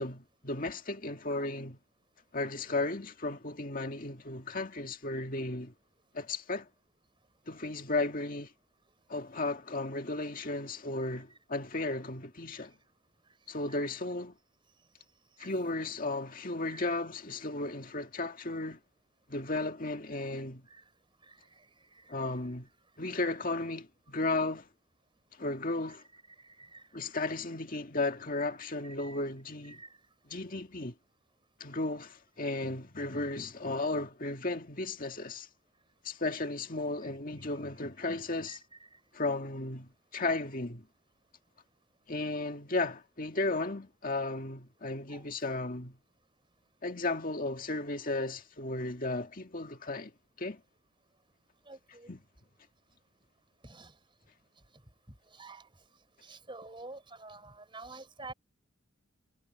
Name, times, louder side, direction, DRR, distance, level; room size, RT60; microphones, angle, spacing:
voice 1, 0.0-1.8 2.3-5.7 6.1-6.7 7.5-8.5 9.1-12.7 13.5-14.4 15.4-18.8 19.3-20.6 22.1-22.7 23.0-24.7 25.4-26.0 26.9-29.8 30.3-30.9 31.6-35.5 36.0-38.6 39.1-40.8 42.1-46.0 46.8-50.1 50.4-50.6 52.1-52.2, left 2 dB, 40° left, 1.9 m, -34 dB
voice 2, 21.3-21.7 21.9-22.0 26.4-26.8 28.8-29.2 29.7-29.9 38.5-38.6 45.1-45.3 51.7-52.1 53.6-53.9 55.3-55.7 56.2-58.3, right 3 dB, 25° right, 4.1 m, -48 dB
head